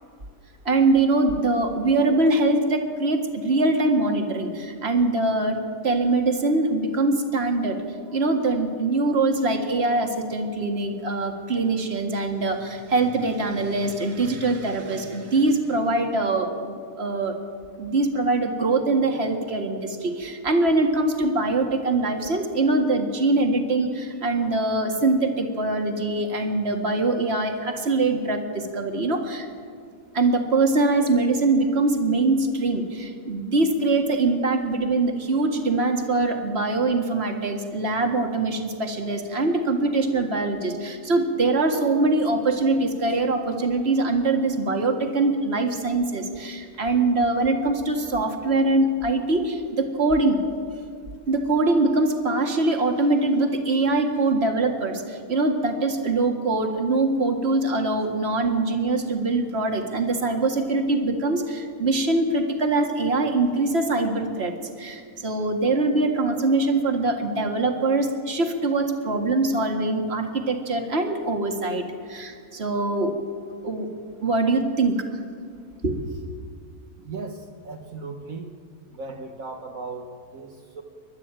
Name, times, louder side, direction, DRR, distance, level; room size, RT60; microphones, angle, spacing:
voice 1, 0.7-5.6 5.8-7.8 8.1-17.4 17.8-29.5 30.1-50.4 51.3-71.8 72.1-73.1 73.6-73.9 74.2-75.1 75.8-76.0, right 2 dB, 45° right, 3 dB, 2.2 m, -23 dB
voice 2, 77.0-78.5 78.9-80.8, right 3 dB, 65° right, 2 dB, 1.8 m, -37 dB
30.0 x 12.5 x 8.9 m, 2.2 s
omnidirectional pair, 1.5 m